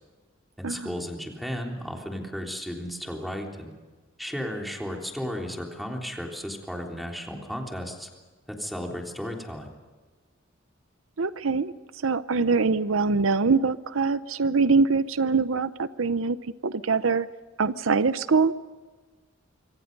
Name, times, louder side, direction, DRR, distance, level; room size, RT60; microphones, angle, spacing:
voice 1, 0.6-3.7 4.2-8.1 8.6-9.7, equal, ahead, 1 dB, 3.5 m, -34 dB
voice 2, 11.2-11.7 12.0-16.4 16.6-17.3 17.6-18.5, right 4 dB, 80° right, 14 dB, 0.7 m, -23 dB
26.0 x 24.5 x 5.4 m, 1.3 s
head